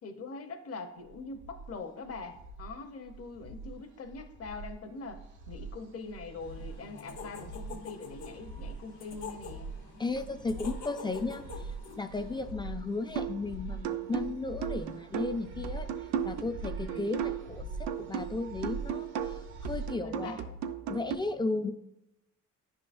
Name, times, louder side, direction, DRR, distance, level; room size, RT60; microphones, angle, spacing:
voice 1, 0.0-5.2 5.5-9.7 16.8-17.2 20.0-20.6, left 4 dB, 50° left, 7 dB, 0.8 m, -43 dB
sound 1, 1.0-19.9, right 3 dB, 85° right, 1.0 m, -44 dB
sound 2, 6.4-12.5, left 5 dB, 80° left, 1.0 m, -47 dB
voice 2, 10.0-11.4 12.0-15.9 16.2-20.4 20.9-21.7, left 3 dB, 15° left, 8 dB, 0.3 m, -35 dB
sound 3, 13.2-13.5 13.8-17.5 17.9-21.2, right 8 dB, 65° right, 0.5 m, -36 dB
9.9 x 3.8 x 2.5 m, 0.88 s
cardioid pair, 90°, 30 cm